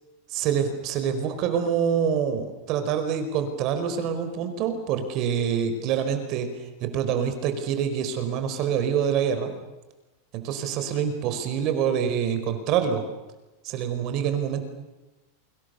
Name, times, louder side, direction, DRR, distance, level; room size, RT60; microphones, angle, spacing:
voice 1, 0.3-6.5 6.8-9.5 10.3-13.0 13.6-14.7, right 8 dB, 40° right, 8 dB, 4.8 m, -26 dB
28.0 x 25.5 x 7.0 m, 1.1 s
supercardioid pair, 145°, 0 cm